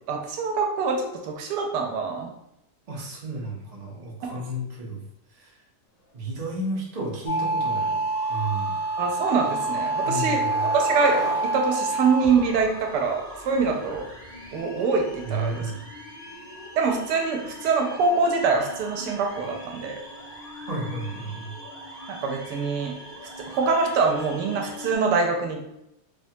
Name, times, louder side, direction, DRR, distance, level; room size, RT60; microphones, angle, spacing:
voice 1, 0.1-2.3 4.2-4.3 9.0-11.2 11.4-14.1 14.5-15.7 16.8-20.0 22.1-22.9 23.5-25.6, right 4 dB, 90° right, 2 dB, 1.2 m, -24 dB
voice 2, 2.9-5.0 5.3-5.6 6.1-8.0 8.3-8.7 10.0-10.7 15.2-15.7 20.6-21.5, right 2 dB, 60° right, -3 dB, 0.4 m, -32 dB
sound 1, 7.3-24.9, right 2 dB, 45° left, 0.9 m, -31 dB
Skateboard, 7.4-7.5 7.9-8.2 8.6-13.2, left 2 dB, 75° left, 0.6 m, -38 dB
3.1 x 2.2 x 2.7 m, 0.82 s
omnidirectional pair, 1.8 m